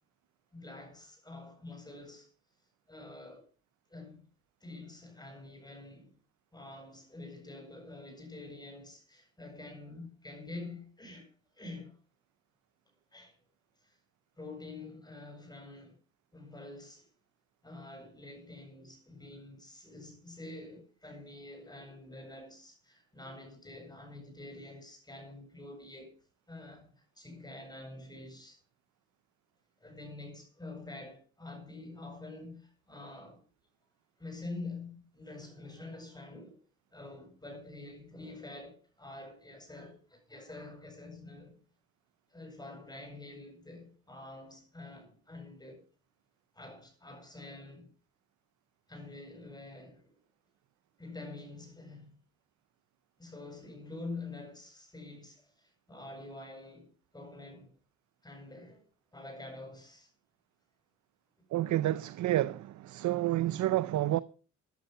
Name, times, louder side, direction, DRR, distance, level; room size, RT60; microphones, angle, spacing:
voice 1, 0.5-2.3 2.9-3.5 3.9-4.2 4.6-6.2 6.5-11.3 11.5-12.0 13.1-13.4 13.8-14.0 14.4-16.0 16.3-17.1 17.6-26.1 26.5-26.9 27.2-28.6 29.8-33.4 34.2-36.6 36.9-41.6 42.3-45.8 46.5-47.9 48.9-50.1 51.0-52.2 53.2-57.7 58.2-58.8 59.1-60.1, left 2 dB, 15° left, 7.9 m, -47 dB
voice 2, 61.5-64.2, right 14 dB, 70° right, 0.7 m, -29 dB
14.0 x 11.5 x 5.6 m
cardioid pair, 90°, 30 cm